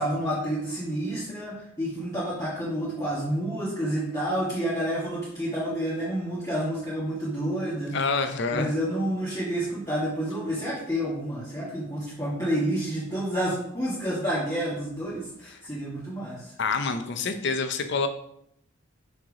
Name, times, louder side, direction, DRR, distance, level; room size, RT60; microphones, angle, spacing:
voice 1, 0.0-8.0 8.5-16.5, right 1 dB, 15° left, -10 dB, 1.6 m, -29 dB
voice 2, 7.9-8.7 16.6-18.1, left 4 dB, 55° left, 8 dB, 0.6 m, -27 dB
6.2 x 3.3 x 4.8 m, 0.74 s
head